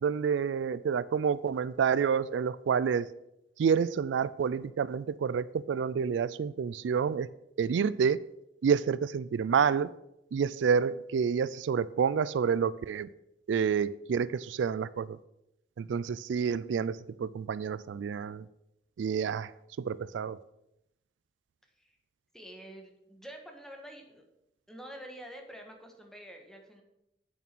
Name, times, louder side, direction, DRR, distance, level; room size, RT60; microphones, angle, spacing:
voice 1, 0.0-3.1 3.6-7.3 7.6-8.2 8.6-9.9 10.3-13.1 13.5-15.2 15.8-18.5 19.0-20.4, right 6 dB, 80° right, 18 dB, 0.3 m, -29 dB
voice 2, 22.3-24.2 24.7-26.8, right 1 dB, 5° left, 3 dB, 1.5 m, -47 dB
8.4 x 7.1 x 6.1 m, 0.85 s
head